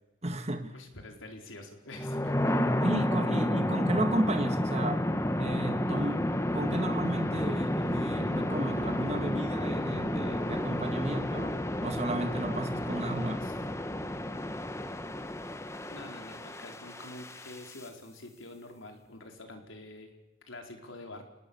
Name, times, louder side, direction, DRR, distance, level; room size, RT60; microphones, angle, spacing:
voice 1, 0.2-0.7 2.8-5.0 5.4-13.5, right 1 dB, 35° right, 7 dB, 1.8 m, -33 dB
voice 2, 0.7-2.3 13.4-13.5 15.9-20.1 20.5-21.2, left 2 dB, 85° left, 4 dB, 4.4 m, -46 dB
sound 1, 1.9-17.8, left 1 dB, 15° left, 1.2 m, -31 dB
29.0 x 19.0 x 7.1 m, 1.0 s
head